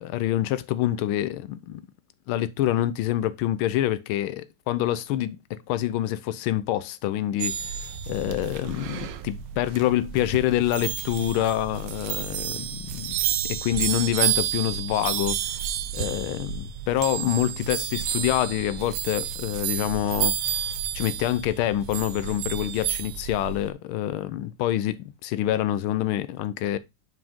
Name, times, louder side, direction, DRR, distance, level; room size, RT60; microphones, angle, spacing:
voice 1, 0.0-1.8 2.3-7.7 8.1-13.2 13.5-15.4 15.9-26.8, left 13 dB, 90° left, 1.4 m, -26 dB
sound 1, 7.4-23.7, right 10 dB, 70° right, 1.2 m, -30 dB
5.7 x 4.9 x 3.5 m
omnidirectional pair, 2.3 m